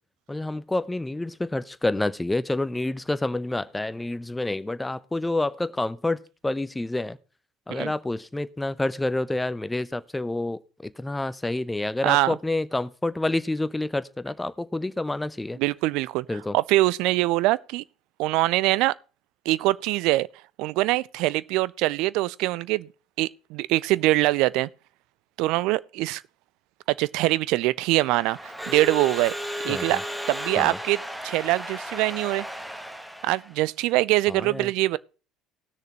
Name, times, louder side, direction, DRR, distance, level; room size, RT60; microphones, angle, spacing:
voice 1, 0.3-6.2 6.4-7.2 7.7-15.6 16.3-16.6 29.7-30.0 30.6-30.8 34.3-34.7, left 2 dB, 10° left, 0.7 m, -28 dB
voice 2, 12.0-12.3 15.6-16.3 16.5-17.8 18.2-18.9 19.5-20.3 20.6-22.9 23.2-24.7 25.4-26.2 26.9-29.3 29.6-30.0 30.3-32.5 33.2-35.0, right 18 dB, 65° right, 0.4 m, -23 dB
Crowd / Alarm, 28.0-33.6, equal, 5° right, 1.4 m, -34 dB
18.5 x 6.6 x 3.0 m
hypercardioid pair, 65°, 0 cm